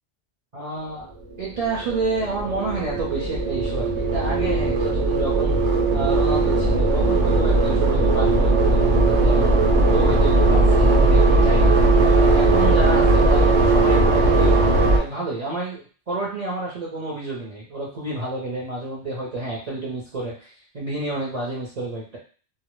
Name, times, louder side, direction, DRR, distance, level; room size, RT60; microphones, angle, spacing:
voice 1, 0.5-1.1 1.4-5.6 5.9-9.5 9.9-11.7 12.0-14.5 14.9-20.5 20.7-22.2, right 2 dB, 45° right, -6 dB, 0.6 m, -29 dB
sound 1, 1.3-15.0, right 2 dB, 85° right, 0.9 m, -18 dB
2.1 x 2.0 x 3.0 m, 0.39 s
omnidirectional pair, 1.2 m